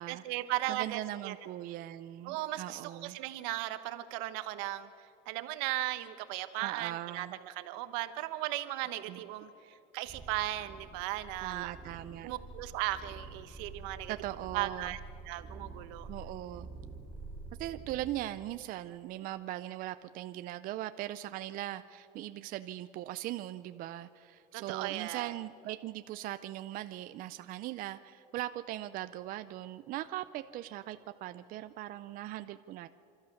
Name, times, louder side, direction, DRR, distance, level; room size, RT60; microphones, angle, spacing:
voice 1, 0.1-1.4 2.2-4.9 5.3-11.7 12.2-14.1 14.5-15.0 15.2-16.1 24.5-25.4, right 15 dB, 80° right, 11 dB, 1.1 m, -37 dB
voice 2, 0.7-3.2 6.6-7.4 9.1-9.2 11.4-12.3 14.1-14.9 16.1-16.7 17.6-32.9, right 14 dB, 45° right, 11 dB, 0.5 m, -40 dB
sound 1, 10.1-18.1, right 3 dB, 10° right, 3.6 m, -48 dB
29.0 x 13.0 x 7.2 m, 2.9 s
cardioid pair, 155°, 20 cm